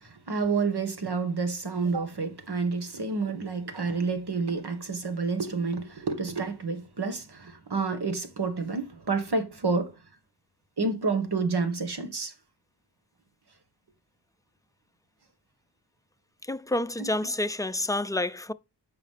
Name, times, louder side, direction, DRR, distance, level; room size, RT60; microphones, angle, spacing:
voice 1, 0.0-9.9 10.8-12.3 17.0-17.3, right 4 dB, 75° right, 1.9 m, -29 dB
voice 2, 16.5-18.5, left 1 dB, 10° left, 0.5 m, -29 dB
8.2 x 5.8 x 3.5 m
cardioid pair, 45°, 40 cm